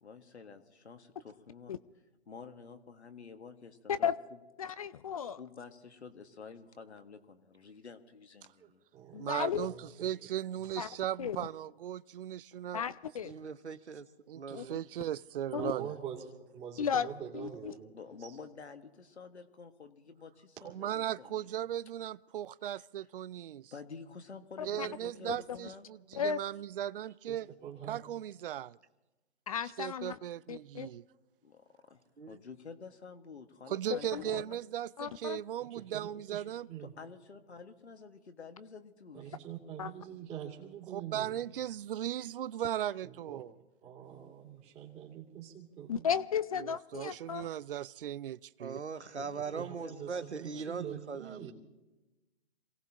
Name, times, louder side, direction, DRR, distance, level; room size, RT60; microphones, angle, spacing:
voice 1, 0.0-1.7 2.3-4.1 5.4-8.8 17.9-21.5 22.6-22.8 23.7-25.9 31.4-34.6 36.8-39.4 49.0-50.3 50.5-50.8, left 5 dB, 75° left, 1.8 m, -50 dB
voice 2, 4.6-5.4 9.1-9.7 10.8-10.9 11.2-11.4 12.7-13.3 14.5-14.8 15.5-15.7 16.8-17.1 17.3-17.7 24.8-24.9 25.3-25.4 26.1-26.4 29.5-30.2 30.5-30.9 33.9-34.4 35.0-35.4 39.8-39.9 45.9-47.5, left 7 dB, 35° left, 0.4 m, -34 dB
voice 3, 8.6-9.2 9.6-10.1 10.7-10.8 15.0-15.1 15.6-17.9 18.2-18.3 27.3-27.4 27.6-28.0 35.6-36.9 39.1-41.4 43.0-43.4 43.8-46.1 49.5-51.5, right 9 dB, 20° right, 2.6 m, -45 dB
voice 4, 9.2-12.8 14.3-15.9 20.6-23.7 24.6-27.5 27.9-28.8 29.8-31.0 33.7-36.7 40.9-43.5 46.6-48.8 49.6-49.7, right 11 dB, 55° right, 0.5 m, -37 dB
voice 5, 13.2-14.1 14.4-14.7 32.2-32.4 48.6-51.4, right 5 dB, 85° right, 1.1 m, -40 dB
27.5 x 17.5 x 2.9 m
figure-of-eight pair, 135°, 33 cm